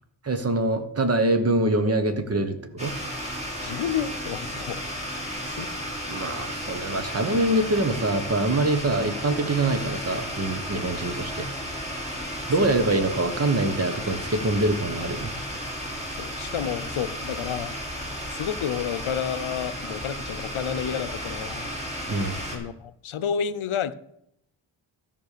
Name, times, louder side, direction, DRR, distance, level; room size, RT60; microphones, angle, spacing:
voice 1, 0.2-2.9 6.1-11.5 12.5-15.3 22.1-22.4, right 2 dB, 30° right, 8 dB, 1.2 m, -24 dB
sound 1, 2.8-22.6, equal, 15° right, 2.8 m, -33 dB
voice 2, 3.6-4.8 5.5-5.7 12.6-12.8 16.2-17.8 18.3-21.7 22.5-23.9, left 8 dB, 90° left, 11 dB, 0.8 m, -30 dB
13.0 x 5.5 x 6.7 m, 0.76 s
wide cardioid pair, 145°, 47 cm